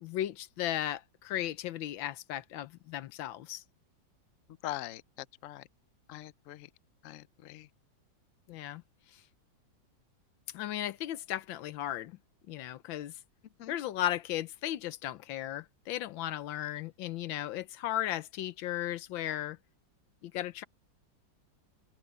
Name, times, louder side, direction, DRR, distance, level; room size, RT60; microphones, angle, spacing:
voice 1, 0.0-3.6 8.5-8.8 9.1-9.2 10.5-12.2 12.5-13.2 13.7-19.6 20.2-20.6, left 13 dB, 85° left, 1.5 m, -36 dB
voice 2, 4.6-5.6 6.1-6.7 7.0-7.7 13.6-13.7, left 14 dB, 65° left, 0.8 m, -42 dB
open air
omnidirectional pair, 2.1 m